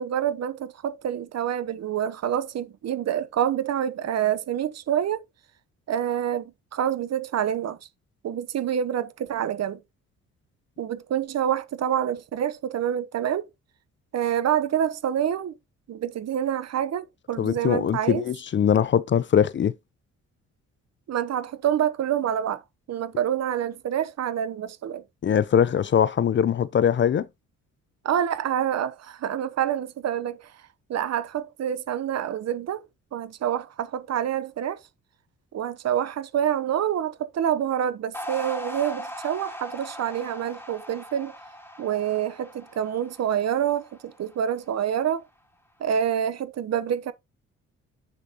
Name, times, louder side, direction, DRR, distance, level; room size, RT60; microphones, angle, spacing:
voice 1, 0.0-5.2 5.9-7.8 8.2-9.8 10.8-13.5 14.1-15.5 15.9-18.2 21.1-22.6 22.9-25.0 28.0-30.5 30.9-32.9 33.1-34.8 35.5-41.3 41.8-45.2 45.8-47.1, right 10 dB, 60° right, 0.9 m, -27 dB
voice 2, 17.4-19.7 25.2-27.3, left 8 dB, 40° left, 0.5 m, -21 dB
sound 1, 38.1-44.6, equal, 5° left, 3.1 m, -39 dB
7.0 x 6.5 x 2.9 m
cardioid pair, 90°, 30 cm